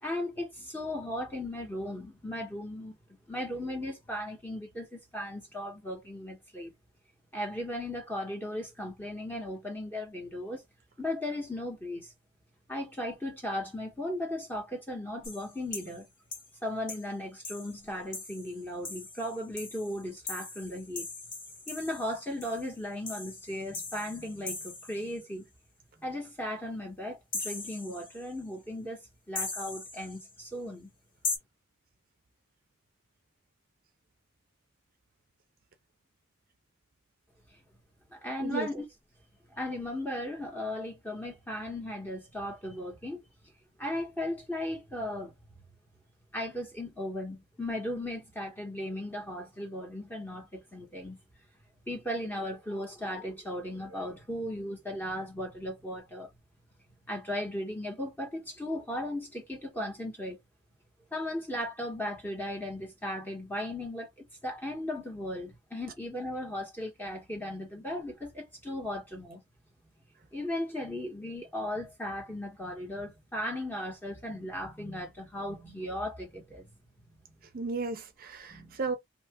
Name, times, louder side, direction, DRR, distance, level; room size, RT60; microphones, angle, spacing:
voice 1, 0.0-3.0 3.3-6.7 7.3-10.6 11.0-12.1 12.7-16.0 16.6-21.1 21.7-25.4 26.0-29.0 29.3-30.9 38.1-38.8 39.5-43.2 43.8-45.3 46.3-51.2 51.9-56.3 57.1-60.4 61.1-64.1 64.4-69.4 70.3-76.7 78.5-78.8, left 1 dB, 10° left, 1.1 m, -36 dB
sound 1, 15.2-16.0 16.3-16.5 16.9-17.1 17.4-25.2 27.3-28.4 29.4-30.4 31.2-31.4, left 3 dB, 40° left, 1.2 m, -40 dB
voice 2, 77.5-79.0, right 4 dB, 45° right, 0.5 m, -34 dB
2.9 x 2.4 x 3.5 m
head